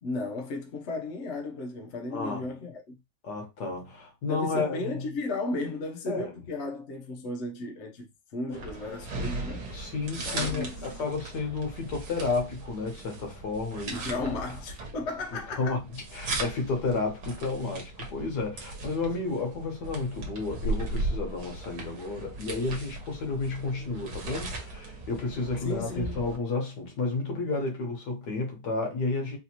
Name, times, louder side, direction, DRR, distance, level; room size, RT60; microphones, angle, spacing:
voice 1, 0.0-2.9 4.3-8.1 8.3-9.8 10.2-10.7 13.9-15.8 25.6-26.3, left 2 dB, 50° left, 1.0 m, -35 dB
voice 2, 3.2-4.8 6.1-6.3 8.5-8.6 9.7-14.2 15.6-15.8 16.1-29.4, left 3 dB, 75° left, 1.7 m, -31 dB
sound 1, 8.5-26.4, right 2 dB, 70° right, 1.6 m, -37 dB
4.0 x 2.6 x 2.8 m
omnidirectional pair, 1.8 m